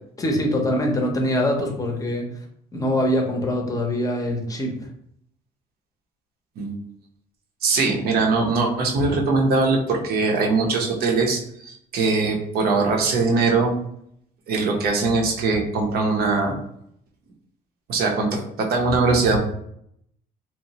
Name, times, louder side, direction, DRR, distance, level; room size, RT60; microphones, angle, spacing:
voice 1, 0.2-2.3 2.7-4.7, left 1 dB, 20° left, 1 dB, 0.6 m, -23 dB
voice 2, 7.6-13.7 14.5-16.6 17.9-19.4, right 3 dB, 65° right, 1 dB, 0.6 m, -21 dB
2.9 x 2.0 x 2.8 m, 0.72 s
cardioid pair, 110°, 17 cm